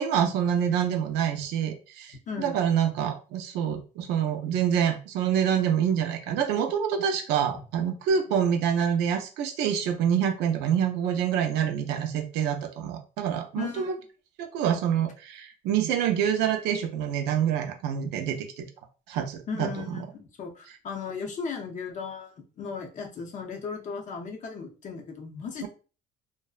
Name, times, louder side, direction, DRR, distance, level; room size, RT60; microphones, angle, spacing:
voice 1, 0.0-13.9 14.4-18.6 19.1-20.0 25.6-25.7, right 8 dB, 90° right, 6 dB, 0.5 m, -26 dB
voice 2, 2.3-2.6 13.6-13.9 19.5-25.7, left 5 dB, 45° left, 3 dB, 0.6 m, -36 dB
2.5 x 2.1 x 2.3 m, 0.35 s
cardioid pair, 110°, 17 cm